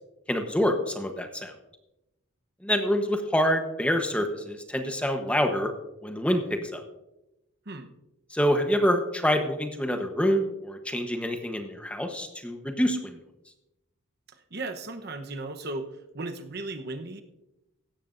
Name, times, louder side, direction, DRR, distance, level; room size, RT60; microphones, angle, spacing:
voice 1, 0.3-1.5 2.6-5.7 6.0-6.8 8.3-13.2, equal, 5° left, 5 dB, 1.0 m, -26 dB
voice 2, 14.5-15.9 16.1-17.2, right 2 dB, 50° right, 7 dB, 1.0 m, -35 dB
16.5 x 13.0 x 2.6 m, 0.92 s
head